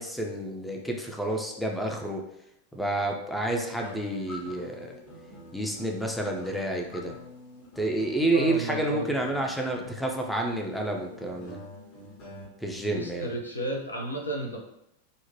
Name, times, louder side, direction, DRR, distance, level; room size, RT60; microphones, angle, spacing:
voice 1, 0.0-2.3 2.7-4.9 5.5-7.1 7.8-11.6 12.6-13.3, right 1 dB, ahead, 1 dB, 0.4 m, -29 dB
sound 1, 3.4-12.4, left 1 dB, 45° left, 1.0 m, -46 dB
voice 2, 8.3-9.1 12.7-14.6, right 1 dB, 80° left, 1 dB, 0.5 m, -33 dB
2.9 x 2.1 x 2.7 m, 0.78 s
figure-of-eight pair, 90°, 0 cm